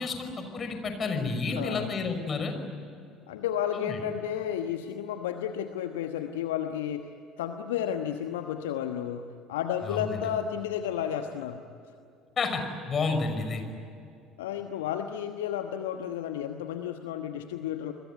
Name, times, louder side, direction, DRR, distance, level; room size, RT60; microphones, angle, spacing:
voice 1, 0.0-2.5 3.7-4.0 9.9-10.2 12.4-13.6, left 4 dB, 35° left, 6 dB, 5.8 m, -30 dB
voice 2, 1.6-1.9 3.3-7.1 7.4-11.6 14.4-17.9, left 9 dB, 70° left, 6 dB, 1.2 m, -32 dB
29.0 x 22.0 x 9.3 m, 2.5 s
figure-of-eight pair, 60°, 0 cm